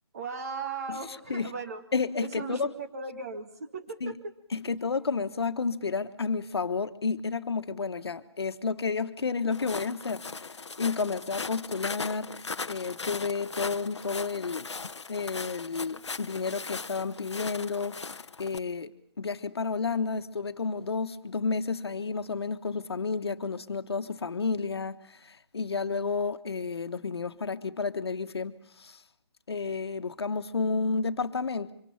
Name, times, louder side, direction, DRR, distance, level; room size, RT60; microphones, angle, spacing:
voice 1, 0.1-1.8 2.2-4.3, right 4 dB, 35° right, 1.8 m, -37 dB
voice 2, 1.9-2.7 4.0-4.1 4.5-10.4 10.8-12.3 12.7-14.7 15.1-18.0 18.4-18.9 19.2-25.0 25.2-29.0 29.5-31.7, left 4 dB, 65° left, 1.4 m, -31 dB
Walk footsteps, 9.5-18.6, left 4 dB, 90° left, 0.9 m, -39 dB
25.0 x 25.0 x 5.8 m
hypercardioid pair, 165°, 14 cm